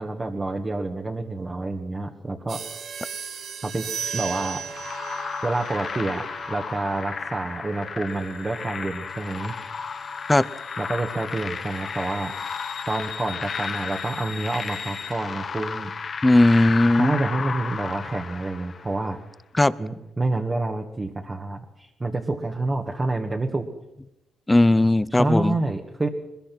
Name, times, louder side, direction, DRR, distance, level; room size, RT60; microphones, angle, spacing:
voice 1, 0.0-2.6 3.6-3.9 4.1-4.6 5.4-9.6 10.8-12.3 12.9-15.9 17.0-19.2 19.8-23.7 25.1-26.1, right 2 dB, 25° right, 2 dB, 1.8 m, -28 dB
sound 1, 2.5-12.7, right 7 dB, 60° right, 1.9 m, -38 dB
sound 2, 4.7-19.1, left 5 dB, 45° left, 1.5 m, -33 dB
sound 3, 8.1-15.1, left 8 dB, 70° left, 5.3 m, -43 dB
voice 2, 16.2-17.2 19.5-19.7 24.5-25.6, left 1 dB, 15° left, 18 dB, 0.7 m, -17 dB
22.0 x 21.5 x 6.1 m, 0.91 s
cardioid pair, 90°, 0 cm